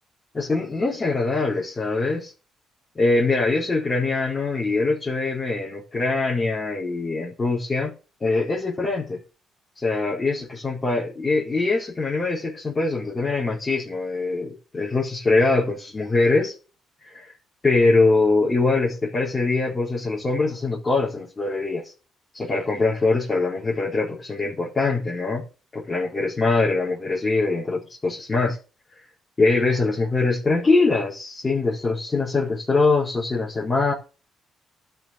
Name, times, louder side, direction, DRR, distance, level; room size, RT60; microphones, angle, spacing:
voice 1, 0.3-2.3 2.9-7.9 8.2-9.2 9.8-16.5 17.0-17.3 17.6-21.9 22.3-25.4 25.7-28.6 29.4-33.9, left 3 dB, 25° left, 4.4 m, -23 dB
12.0 x 6.2 x 6.8 m
cardioid pair, 90°, 0 cm